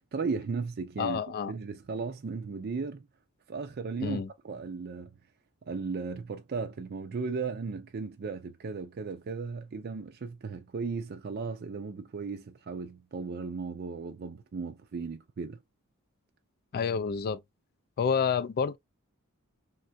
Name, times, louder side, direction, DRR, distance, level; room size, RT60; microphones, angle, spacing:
voice 1, 0.1-3.1 3.5-5.1 5.7-15.6, right 4 dB, 45° right, 0.4 m, -36 dB
voice 2, 1.0-1.5 4.0-4.3 16.7-17.4 18.0-18.8, left 6 dB, 45° left, 0.3 m, -29 dB
3.6 x 2.2 x 2.5 m
head